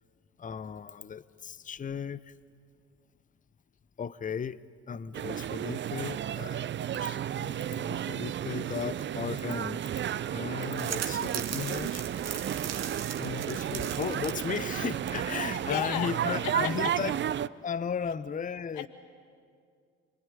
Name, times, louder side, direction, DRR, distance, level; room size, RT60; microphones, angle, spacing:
voice 1, 0.4-2.4 4.0-4.6 4.9-9.8 10.2-12.0 13.2-17.2 17.6-18.9, left 6 dB, 25° left, 0.8 m, -36 dB
sound 1, 5.1-17.5, right 10 dB, 35° right, 0.6 m, -33 dB
sound 2, 10.8-15.8, right 8 dB, 50° right, 1.9 m, -39 dB
voice 2, 15.7-16.7 18.8-18.9, left 10 dB, 65° left, 1.9 m, -33 dB
27.0 x 21.0 x 9.9 m
hypercardioid pair, 55°, 33 cm